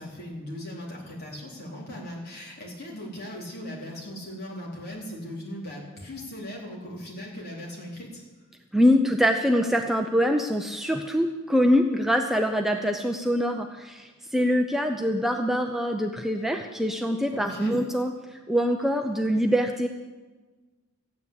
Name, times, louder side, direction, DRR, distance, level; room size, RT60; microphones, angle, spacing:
voice 1, 0.0-8.2 17.3-17.8, left 1 dB, 45° left, -3 dB, 4.1 m, -38 dB
voice 2, 8.7-19.9, equal, ahead, 3 dB, 0.6 m, -24 dB
14.5 x 9.5 x 8.4 m, 1.3 s
head